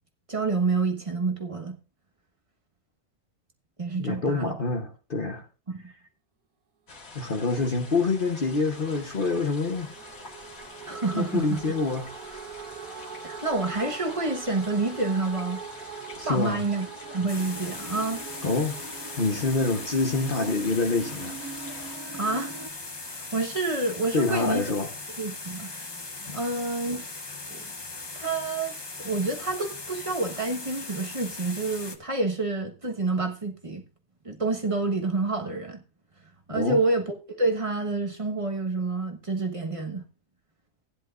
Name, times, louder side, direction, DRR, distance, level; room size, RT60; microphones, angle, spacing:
voice 1, 0.3-1.8 3.8-4.5 5.7-5.9 10.9-11.6 13.2-15.6 16.2-16.9 17.1-18.2 22.1-22.5 23.0-24.6 25.2-25.7 26.3-27.0 27.5-27.6 28.2-28.7 29.0-33.8 34.2-35.8 36.5-40.0, right 3 dB, 25° right, 1.2 m, -28 dB
voice 2, 4.0-5.4 7.1-9.9 11.1-12.1 16.2-16.6 18.4-18.8 19.2-21.4 24.1-24.9 26.3-26.4 36.5-36.8, left 3 dB, 40° left, 1.1 m, -26 dB
sound 1, 6.9-22.0, left 3 dB, 70° left, 2.2 m, -46 dB
sound 2, 7.6-22.7, right 5 dB, 85° right, 1.7 m, -42 dB
sound 3, 17.3-32.0, left 3 dB, 25° left, 0.7 m, -39 dB
16.0 x 10.5 x 2.5 m
omnidirectional pair, 1.5 m